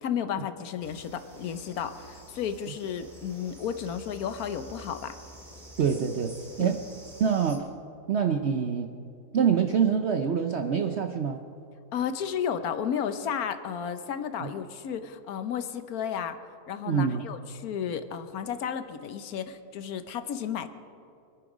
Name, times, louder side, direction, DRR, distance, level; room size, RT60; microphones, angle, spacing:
voice 1, 0.0-5.2 6.6-6.8 11.9-16.4 16.7-20.7, left 8 dB, 60° left, 10 dB, 1.2 m, -33 dB
sound 1, 0.8-7.6, right 1 dB, 25° right, 2.0 m, -49 dB
voice 2, 5.8-6.8 7.2-7.7 8.1-8.9 9.3-11.4 14.4-14.5 16.9-17.2, right 7 dB, 75° right, 6 dB, 0.6 m, -25 dB
25.5 x 9.4 x 5.0 m, 2.6 s
omnidirectional pair, 2.0 m